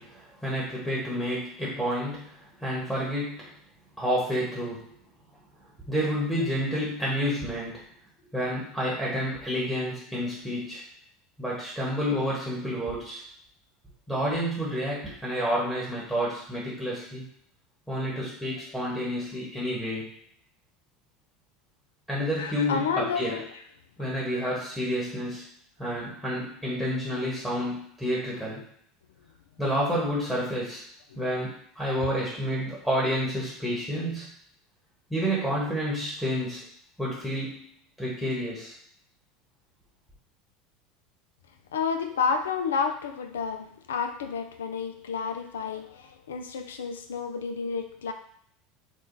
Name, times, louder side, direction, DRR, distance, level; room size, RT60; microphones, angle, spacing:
voice 1, 0.0-3.5 4.0-4.9 5.9-7.8 8.3-10.8 11.4-13.2 14.1-17.3 17.9-20.1 22.1-23.4 24.0-25.5 25.8-28.6 29.6-30.8 31.2-34.3 35.1-36.6 37.0-37.7 38.0-38.7, equal, 5° left, -6 dB, 1.2 m, -29 dB
voice 2, 22.4-23.5 24.3-24.5 31.1-31.2 41.7-48.1, left 5 dB, 75° left, 7 dB, 0.3 m, -30 dB
3.5 x 2.3 x 2.6 m, 0.65 s
figure-of-eight pair, 75°, 0 cm